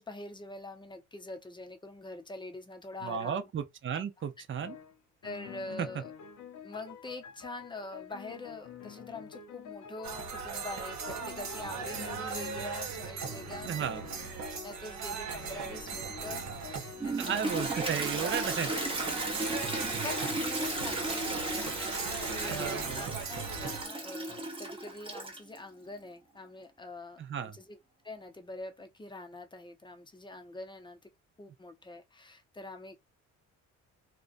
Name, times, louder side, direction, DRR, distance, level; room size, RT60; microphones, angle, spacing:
voice 1, 0.0-3.5 5.2-6.1 6.6-14.0 14.6-17.7 20.0-27.8 28.0-31.1 31.4-33.0, left 2 dB, 15° left, 0.6 m, -44 dB
voice 2, 3.0-4.8 5.8-5.9 13.6-14.1 17.2-18.7 22.4-23.1 27.2-27.6, right 8 dB, 40° right, 0.5 m, -34 dB
sound 1, 4.6-4.9 5.2-12.8 13.2-14.9 15.3-23.2 24.3-24.4, left 7 dB, 65° left, 0.6 m, -48 dB
sound 2, 10.0-23.9, right 5 dB, 65° right, 0.9 m, -38 dB
Toilet flush, 17.0-25.6, right 2 dB, 20° right, 0.9 m, -35 dB
2.4 x 2.2 x 2.4 m
cardioid pair, 90°, 30 cm